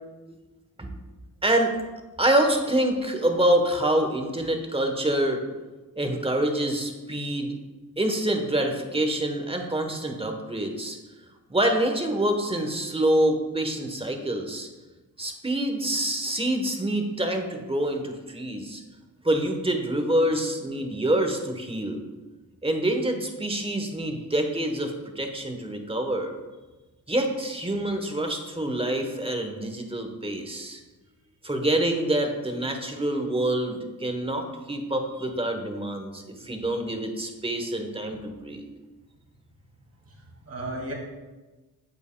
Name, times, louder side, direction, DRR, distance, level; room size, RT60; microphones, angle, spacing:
voice 1, 1.4-1.8 2.2-5.4 6.0-7.6 8.0-11.0 11.5-14.7 15.2-18.8 19.2-22.0 22.6-26.4 27.1-30.8 31.4-38.6, right 1 dB, 15° right, 4 dB, 1.0 m, -26 dB
voice 2, 40.1-40.9, right 1 dB, 40° right, -1 dB, 2.1 m, -37 dB
7.9 x 7.4 x 2.2 m, 1.2 s
cardioid pair, 65°, 37 cm